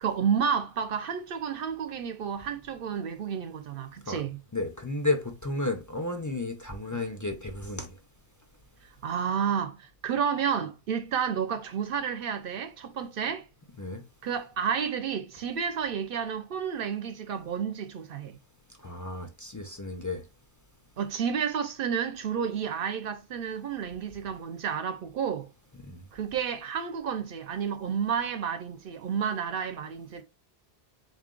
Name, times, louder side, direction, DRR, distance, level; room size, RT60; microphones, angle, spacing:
voice 1, 0.0-4.4 9.0-13.5 14.2-18.4 21.0-25.5 26.1-30.2, right 7 dB, 65° right, 0.7 m, -31 dB
voice 2, 4.5-7.9 13.8-14.0 18.8-20.2 25.9-26.0, left 2 dB, 30° left, 0.3 m, -32 dB
3.8 x 2.4 x 3.7 m
omnidirectional pair, 1.1 m